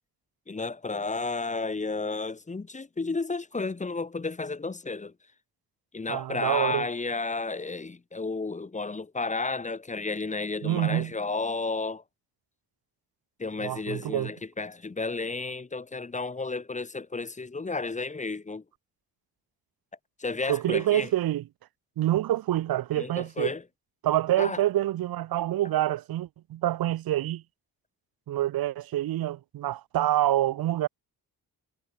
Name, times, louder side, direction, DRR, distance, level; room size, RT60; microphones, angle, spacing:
voice 1, 0.5-5.1 5.9-12.0 13.4-18.6 20.2-21.1 22.9-23.6 24.4-24.6, left 3 dB, 20° left, 1.3 m, -32 dB
voice 2, 6.1-6.9 10.6-11.1 13.6-14.3 20.5-21.4 22.0-23.5 24.0-27.4 28.3-30.9, right 13 dB, 70° right, 0.9 m, -26 dB
cardioid pair, 110°, 37 cm